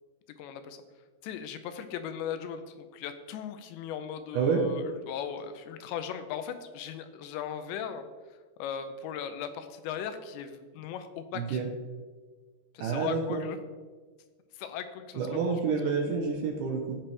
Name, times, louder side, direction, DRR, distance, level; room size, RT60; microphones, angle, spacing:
voice 1, 0.4-0.8 1.2-11.6 12.7-13.6 14.5-15.6, left 8 dB, 85° left, 9 dB, 3.0 m, -38 dB
voice 2, 11.3-11.7 12.8-13.4 15.1-17.0, right 5 dB, 75° right, 2 dB, 1.9 m, -28 dB
16.0 x 6.0 x 3.3 m, 1.4 s
omnidirectional pair, 5.0 m